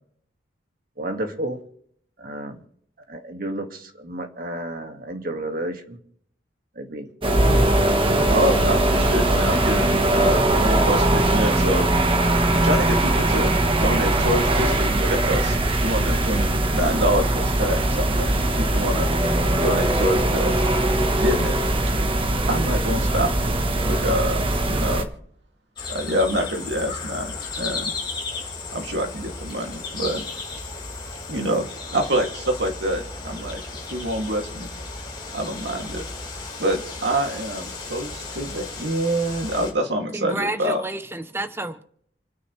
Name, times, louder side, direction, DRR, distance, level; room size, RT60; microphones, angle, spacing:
voice 1, 1.0-1.6 2.2-2.6 3.1-6.0 6.8-7.1, right 1 dB, 50° right, 2.0 m, -31 dB
sound 1, 7.2-25.0, right 1 dB, 30° right, 1.3 m, -21 dB
voice 2, 8.3-11.9 12.5-19.1 19.6-20.6 21.2-21.6 22.5-23.6 23.8-25.1 25.9-27.9 28.7-30.2 31.3-33.6 33.9-34.7 35.3-36.0 36.6-40.8, equal, 85° right, 2.7 m, -26 dB
sound 2, 25.8-39.7, left 3 dB, 25° left, 4.6 m, -34 dB
voice 3, 40.1-41.8, right 2 dB, 15° right, 0.8 m, -30 dB
28.5 x 9.6 x 3.3 m
head